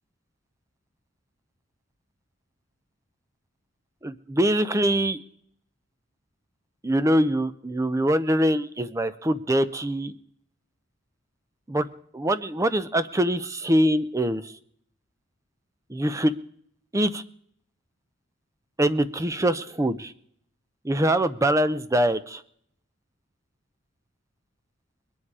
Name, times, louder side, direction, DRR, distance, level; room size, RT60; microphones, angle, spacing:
voice 1, 4.0-5.2 6.8-10.1 11.7-11.9 12.1-14.5 15.9-16.3 16.9-17.2 18.8-20.1 20.8-22.4, right 1 dB, 15° right, 13 dB, 0.6 m, -23 dB
21.5 x 9.9 x 4.8 m, 0.66 s
head